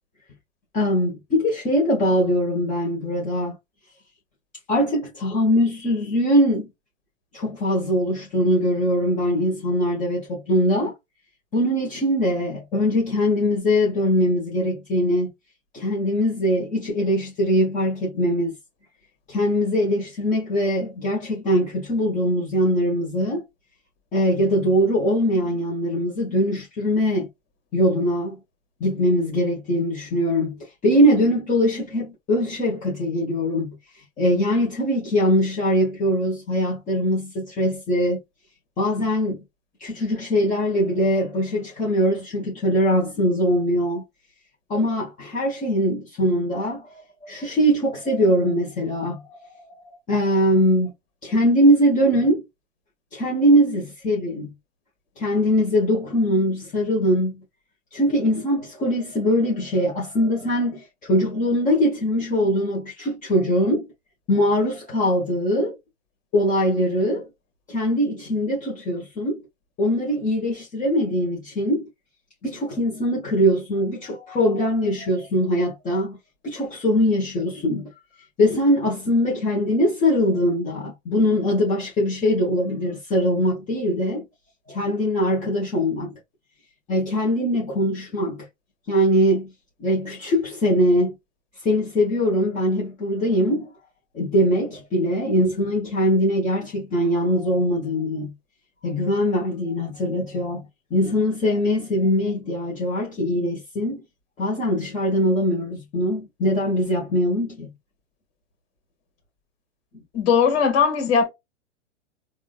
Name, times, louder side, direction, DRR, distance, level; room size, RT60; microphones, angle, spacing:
voice 1, 0.7-3.5 4.7-6.7 7.3-10.9 11.5-15.3 15.7-18.5 19.3-23.4 24.1-27.3 27.7-28.4 28.8-38.2 38.8-39.4 39.8-44.0 44.7-49.4 50.1-50.9 51.2-52.4 53.1-54.5 55.2-57.4 57.9-63.8 64.3-65.8 66.3-67.3 67.7-69.4 69.8-71.8 72.4-76.2 76.4-77.9 78.4-84.2 84.7-86.1 86.9-88.5 88.9-89.5 89.8-91.1 91.6-93.7 94.1-98.3 98.8-100.6 100.9-104.0 104.4-107.7, equal, 20° left, 1.2 m, -22 dB
voice 2, 110.1-111.3, left 6 dB, 50° left, 1.8 m, -19 dB
3.6 x 2.5 x 2.3 m
hypercardioid pair, 120°, 37 cm